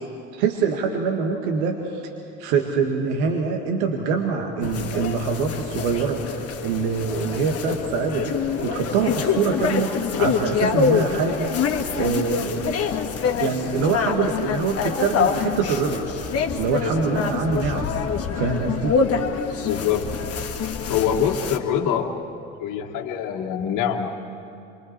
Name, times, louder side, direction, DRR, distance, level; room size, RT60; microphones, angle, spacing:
voice 1, 0.3-2.1 2.4-11.6 11.9-12.8 13.4-16.0 16.6-17.9 18.4-18.9, right 5 dB, 65° right, 3 dB, 1.9 m, -24 dB
sound 1, 4.6-21.6, left 6 dB, 40° left, 1.8 m, -26 dB
voice 2, 19.6-20.1 20.9-22.1 22.6-24.1, left 8 dB, 55° left, 2 dB, 1.8 m, -24 dB
27.5 x 23.0 x 4.5 m, 2.7 s
figure-of-eight pair, 60°, 37 cm